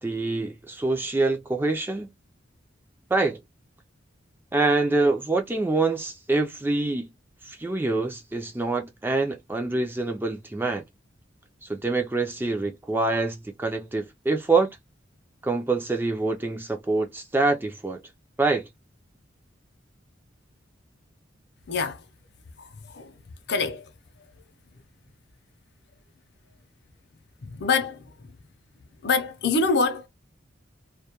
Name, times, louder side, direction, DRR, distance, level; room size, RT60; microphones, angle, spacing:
voice 1, 0.0-2.1 3.1-3.4 4.5-7.1 7.5-10.8 11.6-14.7 15.4-18.0 18.4-18.6, right 3 dB, 10° right, 0.3 m, -25 dB
voice 2, 21.7-22.0 22.9-23.1 23.5-23.8 27.4-28.0 29.0-30.1, left 4 dB, 55° left, 0.5 m, -25 dB
2.2 x 2.1 x 2.8 m
head